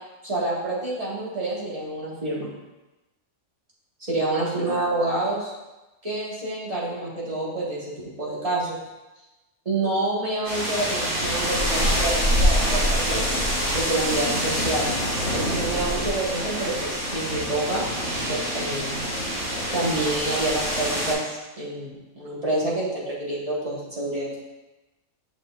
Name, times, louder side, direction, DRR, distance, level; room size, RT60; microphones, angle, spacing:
voice 1, 0.2-2.5 4.1-5.5 6.0-7.9 8.2-8.8 9.7-13.3 13.7-14.9 15.3-17.8 18.3-18.9 19.7-24.4, right 2 dB, 25° right, -7 dB, 1.9 m, -28 dB
sound 1, 10.4-21.1, equal, 70° right, 2.6 m, -25 dB
7.9 x 5.9 x 2.5 m, 1.1 s
omnidirectional pair, 1.5 m